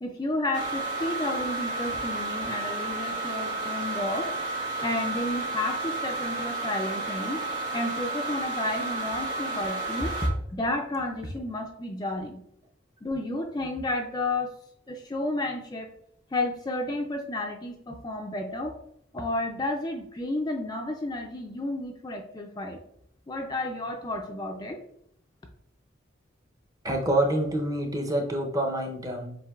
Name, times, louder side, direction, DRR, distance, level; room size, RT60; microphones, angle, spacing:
voice 1, 0.0-4.3 4.8-7.4 7.7-10.1 10.5-12.4 13.0-14.5 14.9-15.9 16.3-18.8 19.1-22.8 23.3-24.8, left 2 dB, 20° left, 3 dB, 0.4 m, -31 dB
sound 1, 0.5-10.3, right 2 dB, 65° right, 1.4 m, -32 dB
voice 2, 26.8-29.4, right 1 dB, 20° right, 2 dB, 0.7 m, -27 dB
7.4 x 2.6 x 2.4 m, 0.70 s
head